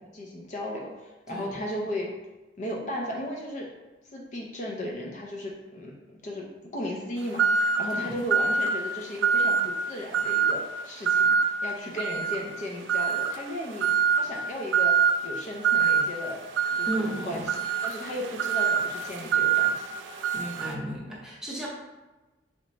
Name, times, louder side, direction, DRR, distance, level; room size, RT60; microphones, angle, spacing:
voice 1, 0.1-2.1 2.6-3.7 4.1-15.0 15.2-16.4 16.7-17.6 17.8-19.9, left 1 dB, 40° left, -1 dB, 0.5 m, -35 dB
sound 1, 7.4-7.9 8.3-8.8 9.2-9.7 10.1-10.6 11.0-11.5 12.0-12.4 12.9-13.4 13.8-14.3 14.7-15.1 15.6-16.0 16.6-20.7, right 7 dB, 85° right, 0.4 m, -24 dB
voice 2, 16.9-17.4 20.3-21.7, right 1 dB, 5° right, -6 dB, 0.8 m, -34 dB
3.2 x 2.8 x 4.0 m, 1.1 s
head